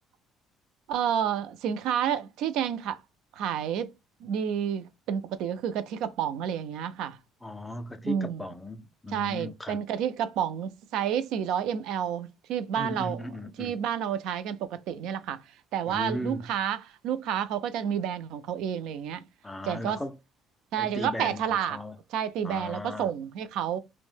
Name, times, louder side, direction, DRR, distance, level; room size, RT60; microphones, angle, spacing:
voice 1, 0.9-3.0 3.4-3.9 4.2-7.2 8.0-8.4 9.1-13.2 13.6-15.4 15.7-19.3 19.7-20.0 20.7-21.8 22.1-23.8, right 9 dB, 65° right, 0.3 m, -30 dB
voice 2, 7.4-9.8 12.8-13.7 15.9-16.5 19.4-20.2 20.8-21.4 21.7-22.0 22.4-23.1, left 1 dB, 5° left, 0.3 m, -36 dB
2.6 x 2.0 x 3.2 m
cardioid pair, 175°, 0 cm